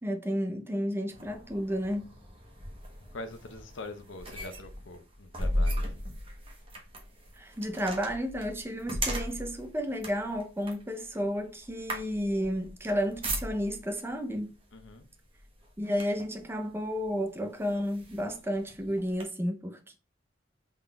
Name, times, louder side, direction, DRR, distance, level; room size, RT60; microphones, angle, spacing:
voice 1, 0.0-2.1 7.4-14.5 15.8-20.0, equal, 15° right, 0.5 m, -32 dB
sound 1, 1.1-13.9 14.8-15.0 15.4-16.4 17.0-17.1 17.6-19.2, equal, 30° right, 0.9 m, -37 dB
voice 2, 3.1-6.0 14.7-15.0, left 2 dB, 90° left, 0.7 m, -43 dB
3.8 x 3.7 x 2.2 m
head